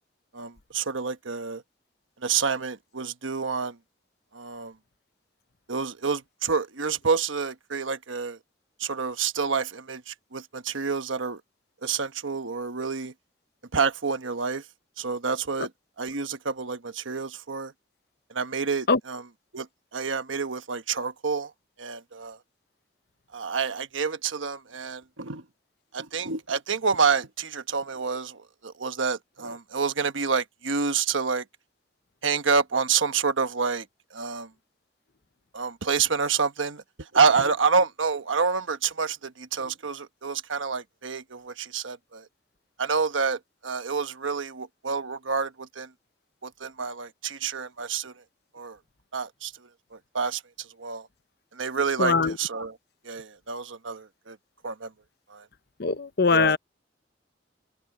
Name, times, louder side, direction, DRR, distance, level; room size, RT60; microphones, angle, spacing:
voice 1, 0.3-1.6 2.2-3.8 4.3-4.7 5.7-8.4 8.8-11.4 11.8-13.1 13.7-14.6 15.0-15.7 16.0-17.7 18.3-19.3 19.5-19.7 19.9-21.5 21.8-22.4 23.3-25.4 25.9-31.4 32.2-33.9 34.1-34.5 35.5-42.2 42.8-45.9 46.4-48.1 48.5-48.8 49.1-49.5 49.9-51.1 51.5-52.8 53.0-54.4 54.6-54.9 55.3-55.4 56.2-56.6, right 5 dB, 85° right, 1.2 m, -28 dB
voice 2, 52.0-52.3 55.8-56.6, left 4 dB, 55° left, 0.9 m, -21 dB
open air
head